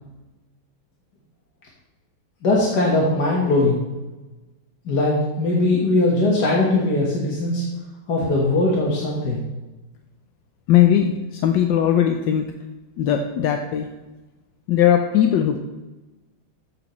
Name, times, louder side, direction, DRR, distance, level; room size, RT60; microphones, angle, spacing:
voice 1, 2.4-3.9 4.9-7.6 8.1-9.4, left 2 dB, 55° left, -4 dB, 1.9 m, -20 dB
voice 2, 10.7-12.5 13.0-13.9 14.7-15.6, left 10 dB, 70° left, 5 dB, 1.2 m, -18 dB
13.5 x 8.0 x 3.2 m, 1.1 s
omnidirectional pair, 2.3 m